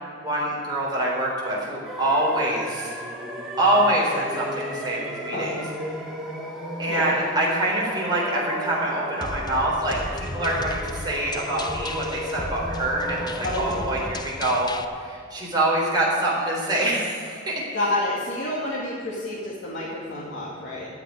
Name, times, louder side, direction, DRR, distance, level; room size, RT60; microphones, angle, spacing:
voice 1, 0.2-2.9 3.6-5.5 6.8-17.5, right 1 dB, 20° right, -5 dB, 4.0 m, -25 dB
sound 1, 1.8-14.1, equal, ahead, 2.3 m, -35 dB
voice 2, 5.3-5.7 6.9-7.1 13.4-13.8 17.7-20.9, left 1 dB, 65° left, -6 dB, 2.3 m, -29 dB
sound 2, 9.2-14.8, left 2 dB, 20° left, 0.6 m, -35 dB
15.0 x 5.9 x 9.7 m, 2.4 s
head